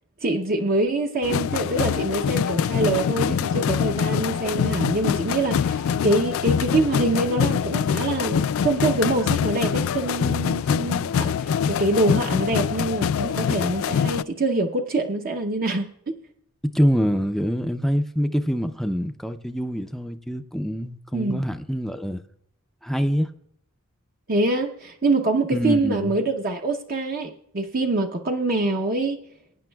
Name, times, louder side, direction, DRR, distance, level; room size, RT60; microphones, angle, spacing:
voice 1, 0.2-16.1 21.1-21.4 24.3-29.2, right 2 dB, 40° right, 0.7 m, -25 dB
sound 1, 1.2-14.2, left 7 dB, 70° left, 0.3 m, -24 dB
voice 2, 16.7-22.2 22.8-23.3 25.5-26.1, equal, ahead, 0.4 m, -25 dB
22.5 x 9.6 x 2.3 m
head